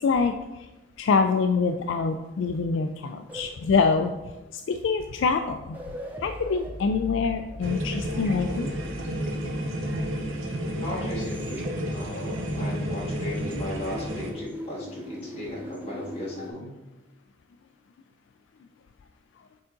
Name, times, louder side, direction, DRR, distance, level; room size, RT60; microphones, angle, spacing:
voice 1, 0.0-0.3 1.0-4.1 4.7-5.8 6.2-8.7 12.1-12.2 16.4-16.5, left 5 dB, 65° left, 7 dB, 0.3 m, -25 dB
sound 1, 3.3-4.2 5.3-5.4 5.6-13.0 13.3-16.5, equal, 10° right, 0.6 m, -40 dB
sound 2, 7.6-14.3, equal, 80° right, 0.9 m, -31 dB
voice 2, 10.8-16.7, left 1 dB, 30° left, -5 dB, 1.7 m, -36 dB
6.9 x 3.8 x 3.7 m, 1.1 s
head